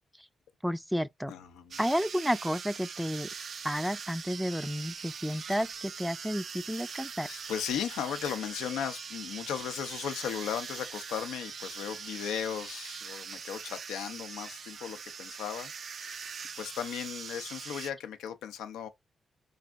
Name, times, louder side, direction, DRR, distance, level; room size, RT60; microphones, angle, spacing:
voice 1, 0.6-1.3 1.8-3.3 3.6-7.3, equal, ahead, 0.4 m, -31 dB
voice 2, 1.3-1.8 7.2-15.7 16.0-18.9, left 9 dB, 90° left, 0.5 m, -36 dB
sound 1, 1.7-17.9, right 6 dB, 65° right, 0.4 m, -42 dB
3.9 x 2.6 x 3.4 m
supercardioid pair, 45°, 0 cm